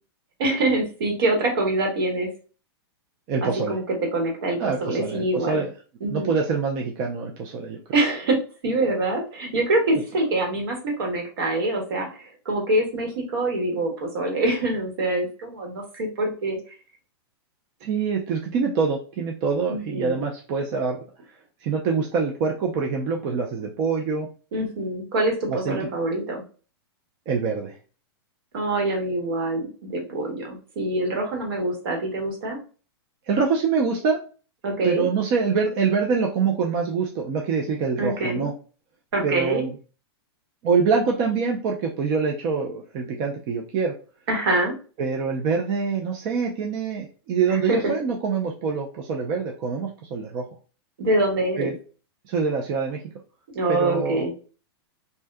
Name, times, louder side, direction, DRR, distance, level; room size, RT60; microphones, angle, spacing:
voice 1, 0.4-2.3 3.4-3.8 4.1-5.6 6.0-6.3 7.9-8.3 8.6-16.6 19.7-20.2 24.5-26.4 28.5-32.6 34.6-35.1 38.0-38.5 39.1-39.6 44.3-44.7 47.5-47.8 51.0-51.7 53.5-54.3, right 2 dB, 65° right, 1 dB, 1.3 m, -25 dB
voice 2, 3.3-3.8 4.6-5.7 6.1-7.8 17.8-21.0 21.6-24.3 25.5-25.9 27.3-27.7 33.3-34.2 34.6-38.5 39.2-39.8 40.6-43.9 45.0-50.4 51.6-51.7 52.3-53.0 53.7-54.3, right 5 dB, 30° right, 0 dB, 0.4 m, -25 dB
2.7 x 2.1 x 3.3 m, 0.37 s
supercardioid pair, 160°, 14 cm